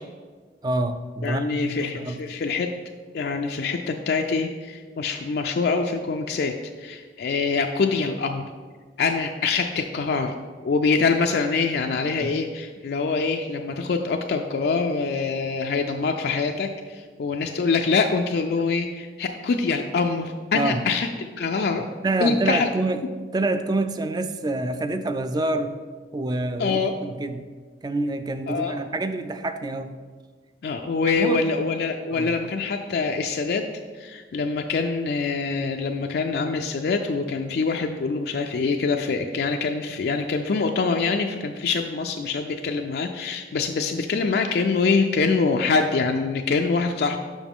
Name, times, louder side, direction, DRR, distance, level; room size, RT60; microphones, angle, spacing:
voice 1, 0.6-2.2 12.2-12.3 20.5-20.8 22.0-25.8 26.1-27.4 27.8-30.0 31.1-31.4 32.1-32.3, right 2 dB, 25° right, 9 dB, 0.3 m, -27 dB
voice 2, 1.2-2.7 3.1-8.5 9.0-10.3 10.6-21.9 22.2-22.7 26.6-26.9 28.5-28.8 30.6-33.7 33.9-47.2, left 4 dB, 60° left, 4 dB, 0.4 m, -25 dB
7.1 x 5.8 x 3.6 m, 1.5 s
head